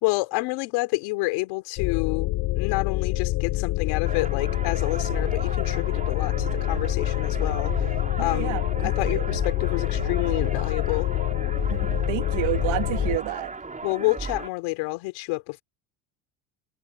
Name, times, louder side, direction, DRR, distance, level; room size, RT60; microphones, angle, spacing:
voice 1, 0.0-7.9 8.2-11.1 13.8-15.6, left 24 dB, 90° left, 4.1 m, -29 dB
sound 1, 1.8-13.2, left 17 dB, 70° left, 5.8 m, -26 dB
sound 2, 4.0-14.5, right 3 dB, 15° right, 5.5 m, -35 dB
voice 2, 8.2-9.2 11.7-13.5, right 19 dB, 80° right, 2.7 m, -30 dB
cardioid pair, 125°, 46 cm